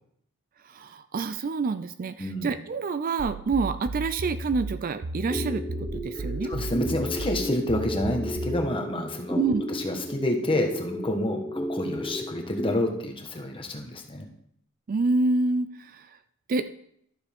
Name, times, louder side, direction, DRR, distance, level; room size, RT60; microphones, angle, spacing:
voice 1, 0.7-6.6 9.4-9.6 14.9-16.1 16.5-16.7, right 3 dB, 40° right, 12 dB, 0.4 m, -27 dB
voice 2, 2.2-2.5 6.1-9.4 9.7-14.3, left 1 dB, 25° left, 3 dB, 1.2 m, -29 dB
sound 1, 3.2-8.7, right 2 dB, 90° right, 0.7 m, -34 dB
sound 2, 5.3-12.8, left 1 dB, ahead, 0.9 m, -33 dB
12.0 x 7.0 x 3.5 m, 0.70 s
head